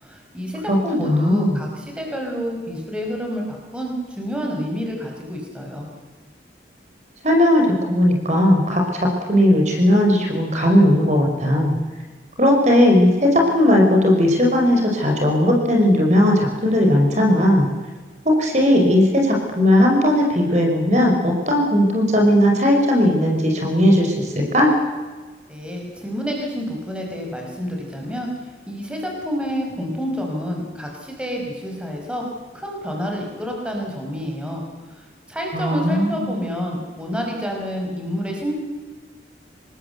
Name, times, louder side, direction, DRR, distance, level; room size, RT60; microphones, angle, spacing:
voice 1, 0.0-5.9 25.5-28.3 28.7-32.2 32.5-34.6 34.9-38.5, equal, 5° right, 0 dB, 5.3 m, -28 dB
voice 2, 0.7-1.6 7.2-11.7 12.4-17.7 18.2-24.7 35.5-36.3, left 1 dB, 40° right, 1 dB, 4.8 m, -17 dB
26.5 x 20.0 x 8.1 m, 1.3 s
head